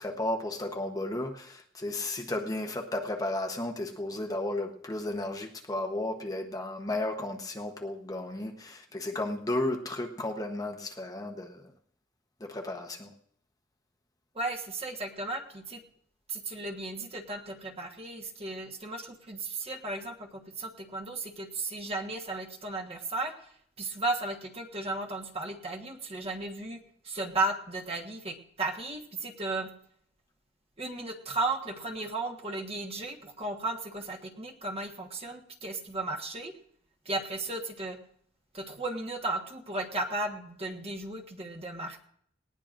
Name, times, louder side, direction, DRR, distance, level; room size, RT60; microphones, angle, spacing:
voice 1, 0.0-11.6 12.4-13.1, left 1 dB, 20° left, 3 dB, 0.9 m, -33 dB
voice 2, 14.3-15.8 16.3-29.7 30.8-36.5 37.0-38.0 38.5-42.0, right 2 dB, 30° right, 3 dB, 1.4 m, -35 dB
19.5 x 19.0 x 2.6 m, 0.67 s
head